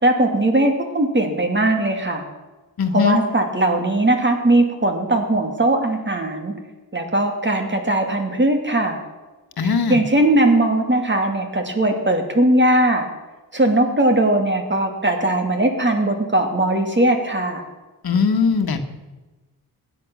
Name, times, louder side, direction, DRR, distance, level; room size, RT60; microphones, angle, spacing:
voice 1, 0.0-2.2 2.9-6.5 6.9-9.0 9.9-13.1 13.5-17.6, right 1 dB, 30° right, 4 dB, 2.6 m, -19 dB
voice 2, 2.8-3.2 9.6-10.0 18.0-18.9, left 5 dB, 65° left, 6 dB, 1.6 m, -20 dB
16.5 x 10.0 x 6.3 m, 1.2 s
cardioid pair, 75°, 39 cm